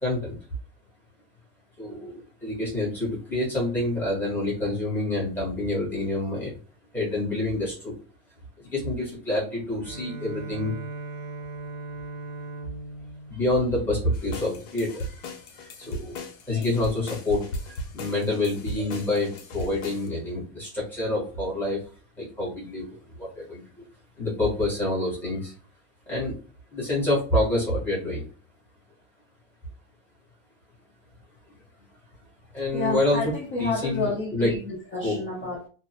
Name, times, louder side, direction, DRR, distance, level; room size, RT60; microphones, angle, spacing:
voice 1, 0.0-0.4 1.8-6.6 6.9-7.9 8.6-10.7 13.3-15.2 15.5-21.8 22.2-23.8 24.2-25.5 26.1-26.3 26.7-28.2 32.5-33.2 33.6-34.5 35.0-35.1, left 2 dB, 5° left, 0.9 m, -27 dB
Bowed string instrument, 9.8-14.5, right 2 dB, 60° right, 0.7 m, -39 dB
sound 1, 14.1-20.1, left 1 dB, 60° left, 0.8 m, -37 dB
voice 2, 32.7-35.7, left 2 dB, 20° left, 0.5 m, -30 dB
2.5 x 2.0 x 2.8 m
supercardioid pair, 175°, 40 cm